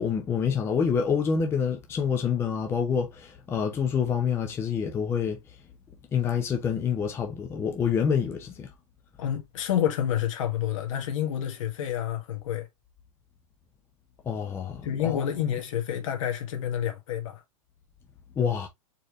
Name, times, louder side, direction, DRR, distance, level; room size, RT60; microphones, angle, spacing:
voice 1, 0.0-5.4 6.1-8.7 14.3-15.3 18.4-18.7, left 6 dB, 15° left, 0.6 m, -27 dB
voice 2, 9.2-12.7 14.8-17.4, left 10 dB, 65° left, 1.5 m, -29 dB
4.6 x 3.3 x 3.0 m
supercardioid pair, 160°, 18 cm